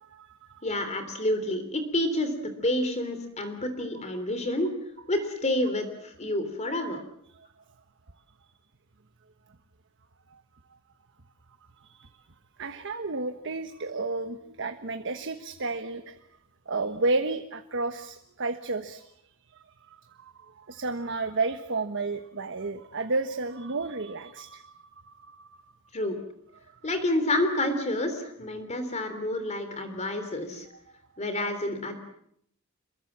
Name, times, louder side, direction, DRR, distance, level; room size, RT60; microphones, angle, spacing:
voice 1, 0.0-0.6 7.3-7.5 10.3-10.4 11.8-12.2 12.6-16.2 16.7-25.6, right 3 dB, 60° right, 8 dB, 1.3 m, -32 dB
voice 2, 0.6-2.3 2.6-4.7 5.1-7.0 25.9-26.2 26.8-30.7 31.2-32.0, left 1 dB, 30° left, 8 dB, 3.5 m, -29 dB
27.0 x 23.0 x 7.5 m, 0.70 s
head